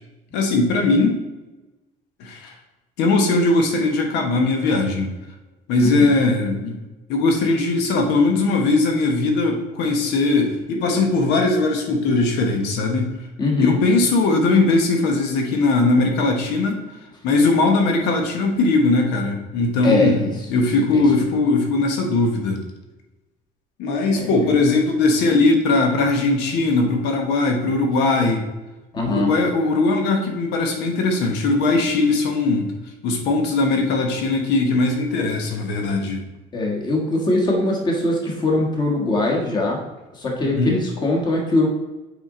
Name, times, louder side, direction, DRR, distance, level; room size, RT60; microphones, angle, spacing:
voice 1, 0.3-1.2 2.2-2.5 3.0-5.1 5.7-6.8 7.1-13.1 13.6-16.8 17.2-22.6 23.8-28.5 29.1-32.7 33.0-36.2 40.4-40.8, left 3 dB, 80° left, 3 dB, 1.3 m, -19 dB
voice 2, 13.4-13.8 19.8-20.3 20.9-21.0 24.1-24.3 28.9-29.3 36.5-39.8 40.1-41.7, left 2 dB, 25° left, -1 dB, 1.5 m, -21 dB
7.1 x 5.0 x 3.8 m, 1.1 s
cardioid pair, 170°, 17 cm